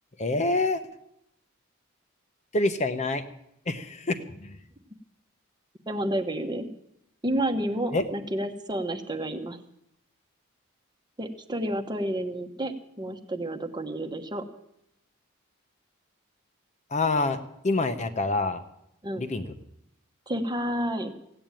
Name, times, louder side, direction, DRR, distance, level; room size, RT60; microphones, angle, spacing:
voice 1, 0.2-0.8 2.5-3.2 3.7-4.6 7.9-8.0 16.9-17.4 17.6-18.6 19.2-19.5, left 2 dB, 35° left, 8 dB, 0.9 m, -26 dB
voice 2, 5.9-6.7 7.2-9.6 11.2-14.4 19.0-19.2 20.3-21.1, right 1 dB, 20° right, 7 dB, 1.2 m, -30 dB
16.0 x 8.8 x 9.0 m, 0.79 s
head